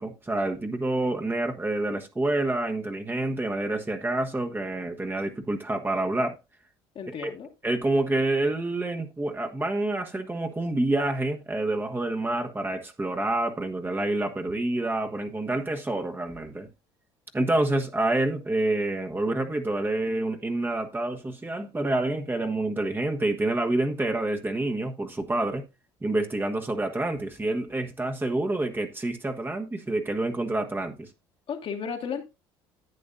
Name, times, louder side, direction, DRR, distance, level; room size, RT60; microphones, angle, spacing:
voice 1, 0.0-6.3 7.2-7.3 7.6-16.7 17.3-25.6 26.0-31.1, right 2 dB, 15° right, 1.3 m, -28 dB
voice 2, 7.0-7.5 31.5-32.2, left 6 dB, 50° left, 1.8 m, -33 dB
11.0 x 8.4 x 2.6 m
hypercardioid pair, 70°, 12 cm